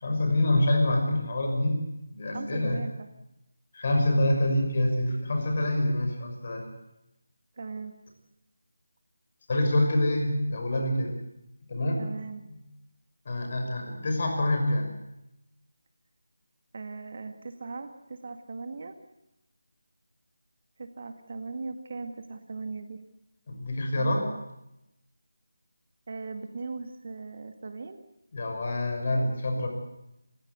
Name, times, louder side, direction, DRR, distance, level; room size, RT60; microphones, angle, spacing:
voice 1, 0.0-1.8 2.1-2.8 3.7-6.7 9.5-11.1 11.7-12.0 13.3-14.9 23.5-24.2 28.3-29.7, left 1 dB, 40° left, 3 dB, 5.9 m, -26 dB
voice 2, 2.3-3.1 7.6-8.0 12.0-12.4 16.7-18.9 20.8-23.0 24.0-24.4 26.1-28.0, right 4 dB, 45° right, 8 dB, 1.9 m, -38 dB
28.0 x 16.0 x 8.3 m, 0.90 s
figure-of-eight pair, 160°, 0 cm